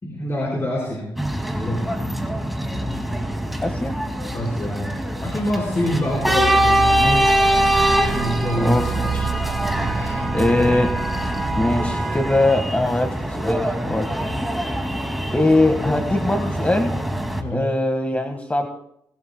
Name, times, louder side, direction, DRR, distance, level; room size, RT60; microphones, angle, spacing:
voice 1, 0.0-1.1 1.5-1.9 4.3-4.9 5.2-6.8 8.1-8.8 9.8-10.2 17.4-17.7, equal, 35° left, -3 dB, 4.5 m, -26 dB
sound 1, 1.2-17.4, equal, ahead, 2.2 m, -23 dB
voice 2, 3.6-4.0 7.0-7.3 8.6-9.3 10.3-10.9 11.6-14.1 15.3-16.9 17.5-18.7, left 2 dB, 15° left, 5 dB, 1.5 m, -21 dB
sound 2, 6.1-11.9, right 8 dB, 60° right, 0.9 m, -29 dB
20.0 x 16.0 x 2.2 m, 0.74 s
supercardioid pair, 60°, 9 cm